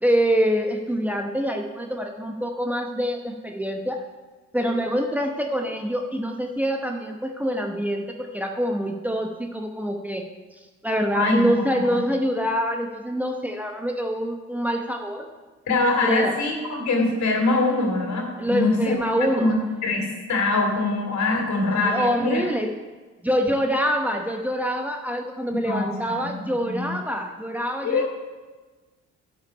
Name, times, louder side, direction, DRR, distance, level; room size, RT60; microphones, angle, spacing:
voice 1, 0.0-4.0 4.5-10.3 10.5-15.3 16.0-16.3 18.4-19.5 21.8-22.7 23.2-28.1, equal, 5° right, 2 dB, 0.9 m, -25 dB
voice 2, 11.1-11.4 11.8-12.0 15.7-18.9 19.3-19.5 19.8-22.4 25.5-26.9 27.8-28.1, left 2 dB, 65° left, 1 dB, 2.7 m, -23 dB
11.5 x 6.0 x 5.4 m, 1.3 s
cardioid pair, 90°, 30 cm